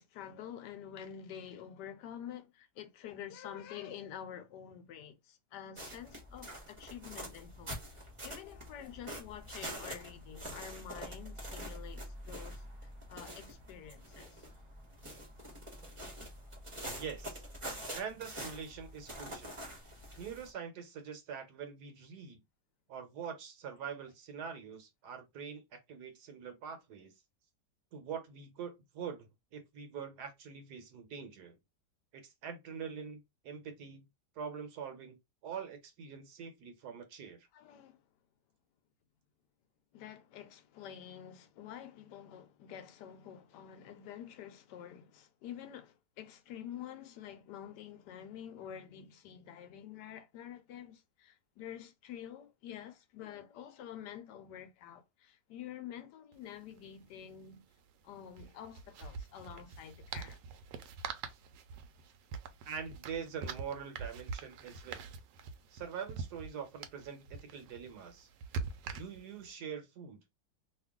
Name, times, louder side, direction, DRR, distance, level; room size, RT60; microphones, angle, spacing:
voice 1, 0.0-7.8 8.2-12.6 13.1-14.4 37.5-38.0 39.9-57.6 58.0-60.4, left 9 dB, 80° left, 1.2 m, -48 dB
sound 1, 5.8-20.5, equal, 25° right, 0.8 m, -46 dB
voice 2, 17.0-17.4 17.9-19.6 20.2-22.4 22.9-27.1 27.9-31.6 32.1-34.0 34.4-37.5 62.6-65.0 65.7-68.3 68.9-70.2, right 7 dB, 70° right, 1.4 m, -44 dB
sound 2, 56.3-56.4 56.6-56.8 58.3-69.5, right 5 dB, 85° right, 1.2 m, -44 dB
3.0 x 2.4 x 3.5 m
omnidirectional pair, 1.8 m